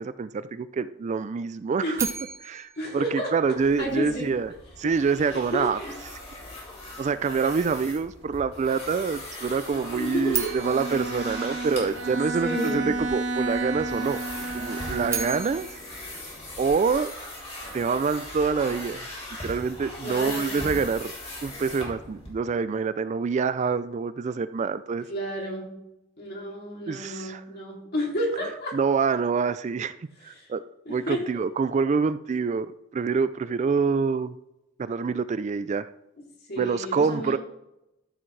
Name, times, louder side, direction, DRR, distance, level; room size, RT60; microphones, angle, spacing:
voice 1, 0.0-2.1 2.4-4.5 4.8-5.8 7.0-14.2 14.5-15.7 16.6-17.1 17.7-19.0 19.4-21.1 21.4-25.1 26.9-27.4 28.7-29.9 30.2-30.6 30.9-34.3 34.8-35.9 36.6-37.4, right 5 dB, 35° right, 14 dB, 0.3 m, -26 dB
sound 1, 1.9-4.1 10.3-12.5 14.8-17.2, right 5 dB, 15° right, 1.5 m, -36 dB
voice 2, 2.8-3.3 3.8-4.3 5.5-5.9 9.9-10.5 12.4-13.0 20.0-20.7 25.1-25.7 26.2-28.7 30.2-30.5 30.8-31.4 36.5-37.4, equal, 55° left, -2 dB, 2.9 m, -31 dB
sound 2, 3.6-22.3, left 1 dB, 35° left, 3.4 m, -40 dB
Bowed string instrument, 10.4-15.7, right 2 dB, 70° right, 1.2 m, -31 dB
13.5 x 6.1 x 3.3 m, 0.88 s
head